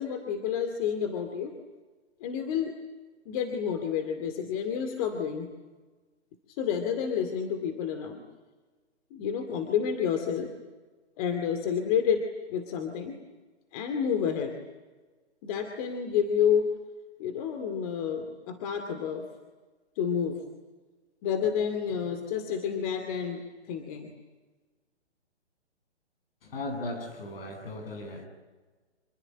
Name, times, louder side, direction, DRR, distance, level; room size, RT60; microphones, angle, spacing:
voice 1, 0.0-1.6 2.2-2.7 3.3-5.5 6.5-8.2 9.1-10.5 11.2-13.1 13.7-14.6 15.4-16.7 17.2-19.3 20.0-20.4 21.2-24.1, left 7 dB, 30° left, 5 dB, 2.4 m, -29 dB
voice 2, 26.4-28.2, left 2 dB, 55° left, 5 dB, 7.8 m, -37 dB
26.5 x 23.5 x 9.0 m, 1.3 s
hypercardioid pair, 140°, 34 cm